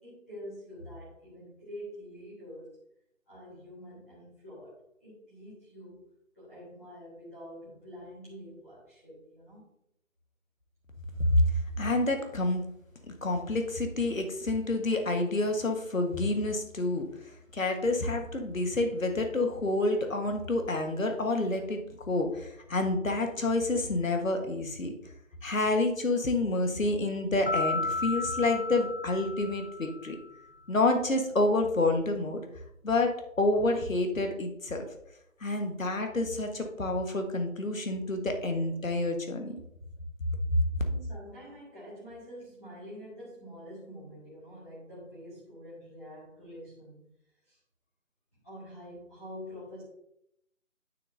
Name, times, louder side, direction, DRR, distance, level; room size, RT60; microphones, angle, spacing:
voice 1, 0.0-2.7 3.3-6.1 6.3-9.6 40.9-47.0 47.5-47.6 48.4-49.8, equal, 10° left, -12 dB, 1.5 m, -46 dB
voice 2, 11.2-12.6 13.1-24.9 25.4-30.2 30.7-32.4 32.8-34.9 35.4-39.5 40.5-40.8, left 2 dB, 70° left, 5 dB, 1.5 m, -28 dB
sound 1, 27.5-30.2, left 3 dB, 45° left, 0.8 m, -33 dB
9.3 x 6.9 x 2.7 m, 0.78 s
figure-of-eight pair, 165°, 41 cm